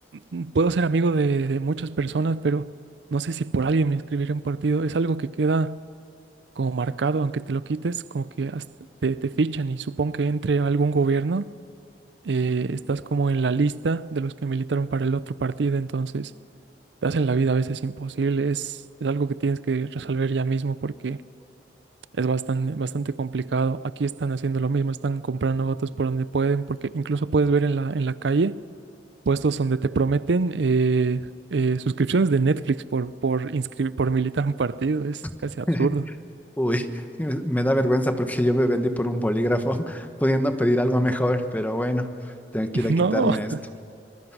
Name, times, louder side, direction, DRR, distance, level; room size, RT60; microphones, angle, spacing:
voice 1, 0.3-2.7 3.1-5.8 6.6-8.6 9.0-11.5 12.2-16.3 17.0-21.2 22.2-28.6 29.3-36.0 42.7-43.6, right 4 dB, 80° right, 0.5 m, -24 dB
voice 2, 36.6-43.5, equal, 10° left, 1.2 m, -24 dB
25.5 x 20.5 x 6.1 m
head